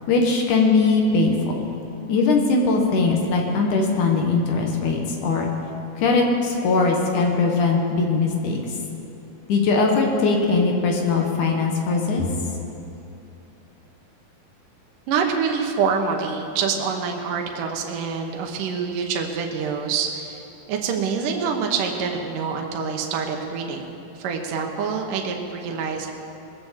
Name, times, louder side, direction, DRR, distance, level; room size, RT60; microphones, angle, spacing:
voice 1, 0.1-1.4 2.1-5.5 6.0-8.6 9.5-12.3, left 3 dB, 65° left, 1 dB, 2.5 m, -20 dB
voice 2, 15.1-20.4 20.7-26.1, right 6 dB, 70° right, 2 dB, 2.5 m, -26 dB
20.0 x 6.9 x 7.4 m, 2.8 s
omnidirectional pair, 4.2 m